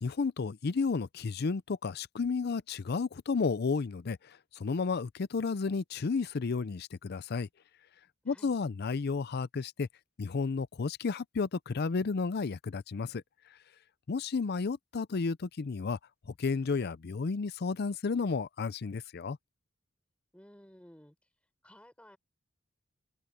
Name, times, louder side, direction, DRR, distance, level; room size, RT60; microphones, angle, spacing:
voice 1, 0.0-4.2 4.6-7.5 8.3-9.9 10.2-13.2 14.1-16.0 16.4-19.4, left 4 dB, 55° left, 0.5 m, -32 dB
voice 2, 20.3-21.2 21.6-22.2, equal, 5° left, 6.4 m, -55 dB
open air
head